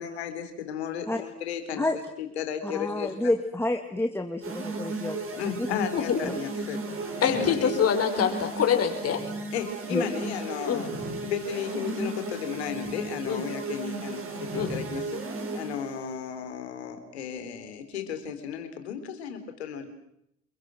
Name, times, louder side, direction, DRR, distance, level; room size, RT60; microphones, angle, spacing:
voice 1, 0.0-1.9 2.2-3.1 5.4-6.8 7.2-7.7 9.5-10.9 11.2-15.1 15.5-19.9, left 7 dB, 90° left, 8 dB, 3.7 m, -34 dB
voice 2, 2.6-5.7 6.2-6.4 9.9-10.1, left 1 dB, 10° left, 5 dB, 2.5 m, -29 dB
sound 1, 4.4-16.0, right 2 dB, 40° right, 6.4 m, -35 dB
voice 3, 5.7-6.2 7.2-9.2 10.7-10.8 13.2-13.4 14.5-14.7, left 8 dB, 50° left, 5 dB, 5.8 m, -25 dB
29.5 x 23.0 x 6.3 m, 0.79 s
hypercardioid pair, 70°, 32 cm